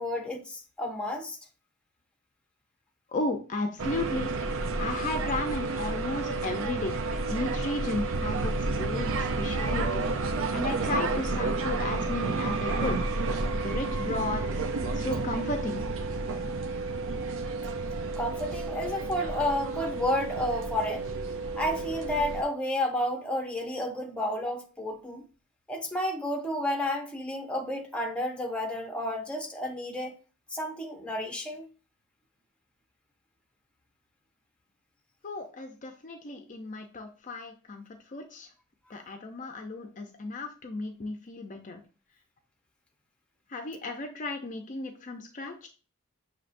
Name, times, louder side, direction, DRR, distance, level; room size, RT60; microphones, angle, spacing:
voice 1, 0.0-1.4 18.2-21.1 21.6-25.2 25.7-30.1 30.5-31.6, left 1 dB, 5° left, 0.8 m, -31 dB
voice 2, 3.1-4.3 4.8-7.0 7.3-13.0 13.6-14.6 14.9-15.8 35.2-38.5 38.9-41.8 43.5-45.7, left 2 dB, 35° left, 0.5 m, -34 dB
sound 1, 3.8-22.4, right 3 dB, 65° right, 0.5 m, -31 dB
6.6 x 2.8 x 2.5 m
head